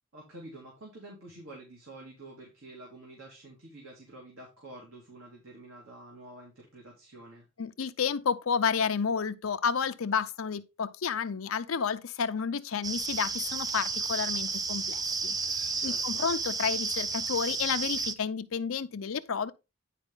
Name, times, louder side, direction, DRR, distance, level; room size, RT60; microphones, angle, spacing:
voice 1, 0.1-7.5 15.7-16.3, right 1 dB, 75° right, 2.8 m, -48 dB
voice 2, 7.6-19.5, left 6 dB, 80° left, 0.6 m, -31 dB
sound 1, 12.8-18.2, right 4 dB, 20° right, 0.4 m, -32 dB
10.0 x 4.8 x 3.7 m
head